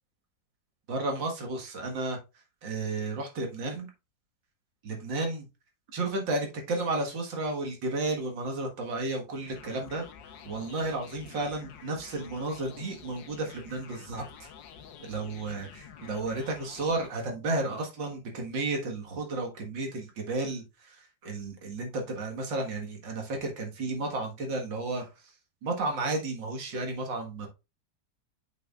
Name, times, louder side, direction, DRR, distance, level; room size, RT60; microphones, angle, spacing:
voice 1, 0.9-2.2 2.6-3.9 4.8-5.4 5.9-10.1 10.4-14.5 15.0-25.3 25.6-27.5, right 2 dB, 85° right, 2 dB, 2.3 m, -33 dB
sound 1, 9.5-17.1, left 7 dB, 80° left, 1.6 m, -49 dB
7.9 x 5.9 x 2.4 m, 0.26 s
omnidirectional pair, 2.0 m